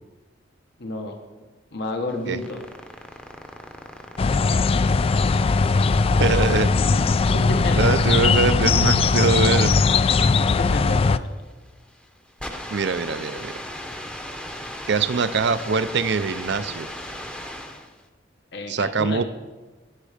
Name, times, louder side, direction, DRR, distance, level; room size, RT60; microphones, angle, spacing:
voice 1, 0.8-1.2 1.7-2.6 7.3-8.1 10.2-11.2 18.5-19.2, left 2 dB, 60° left, 4 dB, 1.1 m, -31 dB
sound 1, 2.1-18.0, equal, 5° left, 0.8 m, -38 dB
sound 2, 4.2-11.2, left 4 dB, 30° left, 0.3 m, -19 dB
voice 2, 6.2-6.7 7.8-9.7 12.7-13.6 14.9-16.9 18.7-19.2, right 4 dB, 60° right, 14 dB, 0.6 m, -23 dB
17.0 x 7.3 x 5.0 m, 1.3 s
head